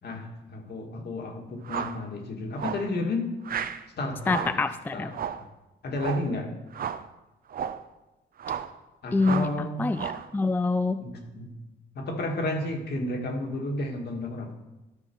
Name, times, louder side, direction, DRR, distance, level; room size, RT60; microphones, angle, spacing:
voice 1, 0.0-3.2 4.0-4.6 4.9-5.2 5.8-6.5 9.0-9.9 11.0-11.5 12.0-14.5, left 1 dB, 55° left, 2 dB, 1.9 m, -32 dB
sound 1, 1.6-2.0 2.6-2.9 3.4-3.8 4.2-4.6 5.1-5.5 6.0-6.3 6.7-7.1 7.5-7.8 8.4-8.8 9.2-9.6 9.9-10.3, right 8 dB, 50° right, 0.6 m, -33 dB
voice 2, 4.3-5.1 9.1-11.0, left 3 dB, 10° left, 11 dB, 0.3 m, -26 dB
12.5 x 4.9 x 4.5 m, 1.0 s
cardioid pair, 90°, 20 cm